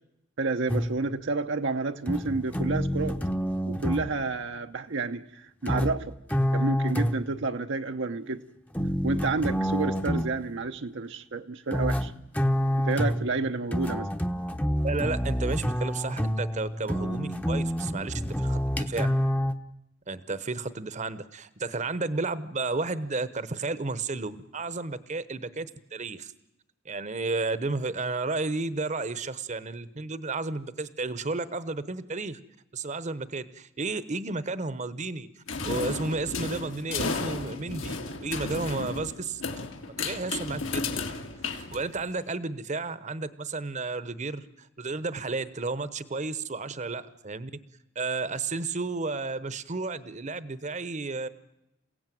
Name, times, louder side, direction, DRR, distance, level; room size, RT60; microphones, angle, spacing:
voice 1, 0.4-3.2 3.7-6.1 6.5-8.4 9.0-12.1 12.9-14.1, right 3 dB, 65° right, 6 dB, 0.8 m, -30 dB
sound 1, 0.7-1.2 2.1-4.1 5.7-7.4 8.8-10.4 11.7-19.5, equal, 10° left, 0.8 m, -28 dB
voice 2, 14.8-19.1 20.1-26.3 26.8-32.4 32.7-35.3 35.6-38.0 38.2-39.4 40.0-40.9 41.7-47.5 47.9-51.3, right 3 dB, 35° right, 15 dB, 0.9 m, -32 dB
sound 2, 35.5-42.2, left 3 dB, 75° left, 2.3 m, -33 dB
28.0 x 16.5 x 9.2 m, 0.90 s
head